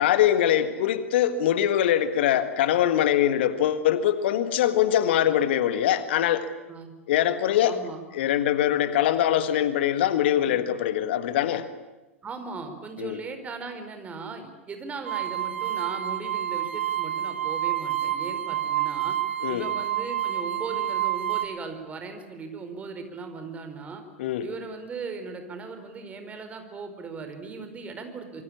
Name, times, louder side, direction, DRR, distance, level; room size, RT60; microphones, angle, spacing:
voice 1, 0.0-6.5 7.1-7.8 8.1-11.7 13.0-13.2 19.4-19.7 24.2-24.5, left 11 dB, 55° left, 11 dB, 1.7 m, -23 dB
voice 2, 7.6-8.0 10.4-10.6 12.2-19.2 19.5-24.0 24.4-28.4, right 4 dB, 20° right, 7 dB, 4.6 m, -38 dB
sound 1, 15.0-21.4, right 12 dB, 65° right, 3.2 m, -28 dB
26.5 x 23.5 x 8.7 m, 1.1 s
figure-of-eight pair, 95°, 7 cm